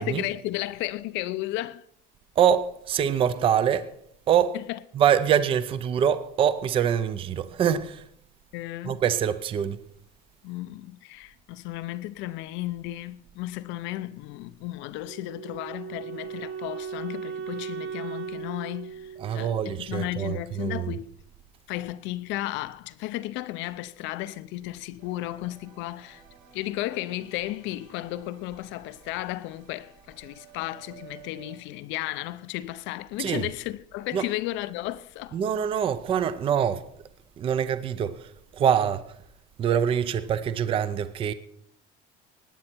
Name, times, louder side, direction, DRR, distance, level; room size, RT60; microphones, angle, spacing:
voice 1, 0.0-1.8 4.5-4.8 8.5-9.0 10.4-21.1 21.7-26.2 26.5-35.4, left 16 dB, 65° left, 0.6 m, -34 dB
voice 2, 2.4-3.9 4.3-4.6 4.9-8.1 8.8-9.8 19.2-20.9 33.2-33.5 34.1-34.2 35.3-36.9 37.4-39.1 39.6-41.3, right 9 dB, 25° right, 0.5 m, -24 dB
Wind instrument woodwind instrument, 15.0-20.1, right 7 dB, 85° right, 1.3 m, -37 dB
sound 1, 25.0-31.6, right 9 dB, 65° right, 4.3 m, -54 dB
17.5 x 9.7 x 4.4 m
cardioid pair, 175°, 21 cm